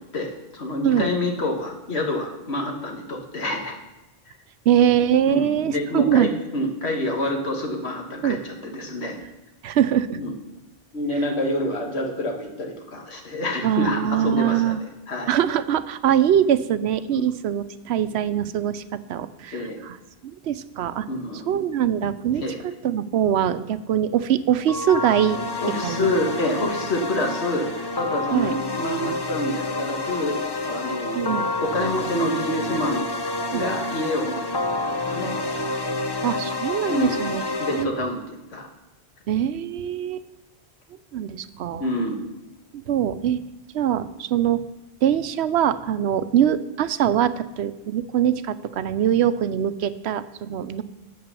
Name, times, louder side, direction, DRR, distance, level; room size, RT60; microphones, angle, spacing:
voice 1, 0.0-3.8 5.3-9.2 10.2-10.3 10.9-14.7 15.1-15.3 17.1-17.3 19.5-19.8 21.1-21.6 22.4-22.6 25.6-30.4 30.6-33.1 33.5-34.8 35.1-35.4 35.8-35.9 36.9-37.2 37.6-38.7 41.8-42.2, left 1 dB, 90° left, 1 dB, 1.8 m, -27 dB
voice 2, 4.7-6.3 8.2-8.4 9.6-10.2 13.6-14.8 15.3-20.0 20.4-21.1 21.5-22.4 22.8-25.4 25.8-26.1 26.6-26.7 28.3-28.5 31.1-31.5 33.5-33.6 36.2-37.4 37.7-37.9 39.3-40.3 41.1-41.9 42.7-43.4 43.7-44.6 45.0-50.8, right 10 dB, 85° right, 13 dB, 0.9 m, -22 dB
sound 1, 24.7-37.8, left 2 dB, 30° left, 0.6 m, -28 dB
8.7 x 7.7 x 6.8 m, 0.98 s
omnidirectional pair, 1.1 m